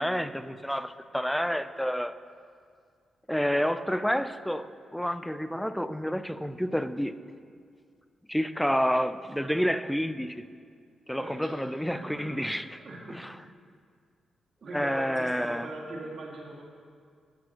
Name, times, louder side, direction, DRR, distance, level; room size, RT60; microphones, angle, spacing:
voice 1, 0.0-2.1 3.3-7.2 8.3-10.5 11.1-12.7 13.1-13.3 14.7-15.7, equal, 5° left, 0.5 m, -29 dB
voice 2, 11.2-12.3 12.8-13.2 14.6-16.6, right 2 dB, 60° right, 2.1 m, -41 dB
16.5 x 6.1 x 3.0 m
supercardioid pair, 55°, 0 cm